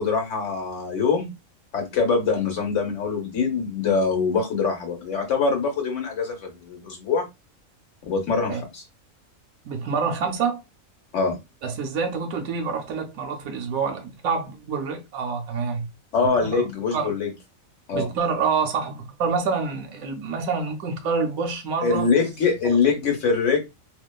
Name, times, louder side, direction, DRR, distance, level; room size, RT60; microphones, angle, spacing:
voice 1, 0.0-1.3 1.7-7.2 8.0-8.8 11.1-11.4 16.1-17.3 17.9-18.1 21.8-23.6, left 5 dB, 60° left, 1.3 m, -23 dB
voice 2, 9.6-10.6 11.6-15.9 16.2-17.1 17.9-22.1 22.6-23.0, right 5 dB, 85° right, 1.0 m, -27 dB
2.9 x 2.2 x 2.2 m
omnidirectional pair, 1.4 m